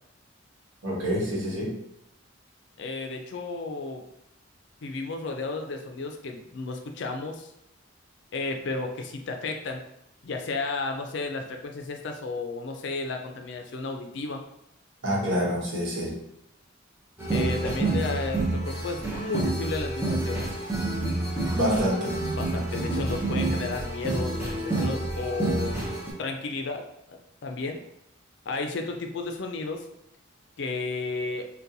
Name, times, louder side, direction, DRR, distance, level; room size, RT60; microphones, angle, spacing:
voice 1, 0.8-1.8 15.0-16.2 21.5-22.2, equal, 75° right, -4 dB, 1.0 m, -27 dB
voice 2, 2.8-4.0 4.8-7.5 8.3-9.8 10.2-14.4 17.3-20.5 22.3-25.8 26.2-26.8 27.1-27.8 28.5-29.9 30.6-31.5, left 3 dB, 60° left, 4 dB, 0.4 m, -33 dB
sound 1, 17.2-26.1, right 2 dB, 10° right, 0.6 m, -28 dB
4.0 x 2.2 x 2.6 m, 0.79 s
head